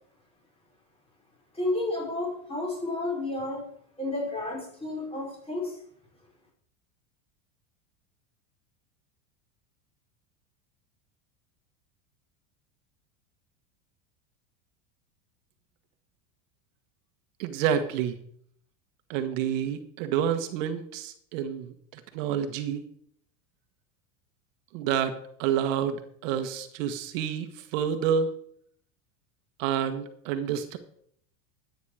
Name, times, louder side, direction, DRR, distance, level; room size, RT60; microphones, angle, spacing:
voice 1, 1.5-3.7 4.0-5.8, left 2 dB, 15° left, -1 dB, 5.4 m, -31 dB
voice 2, 17.4-18.2 19.1-22.8 24.7-28.3 29.6-30.8, right 8 dB, 70° right, 8 dB, 1.5 m, -29 dB
13.0 x 9.3 x 4.9 m, 0.65 s
supercardioid pair, 125°, 40 cm